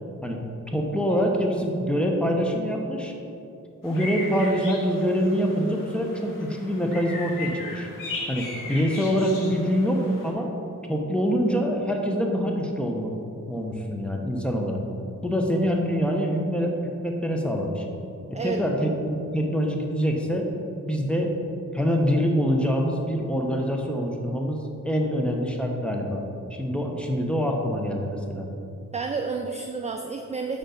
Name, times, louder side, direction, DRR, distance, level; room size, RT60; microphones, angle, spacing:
voice 1, 0.7-3.1 3.8-7.9 8.3-10.5 10.9-13.1 13.5-14.8 15.2-17.8 18.4-20.5 20.9-21.4 21.7-26.2 26.5-28.5, equal, 5° left, 1 dB, 0.7 m, -25 dB
sound 1, 3.8-10.3, left 2 dB, 85° left, 1.1 m, -37 dB
voice 2, 28.9-30.6, right 4 dB, 20° right, 3 dB, 0.3 m, -30 dB
5.1 x 4.4 x 5.1 m, 2.6 s
wide cardioid pair, 85°, 32 cm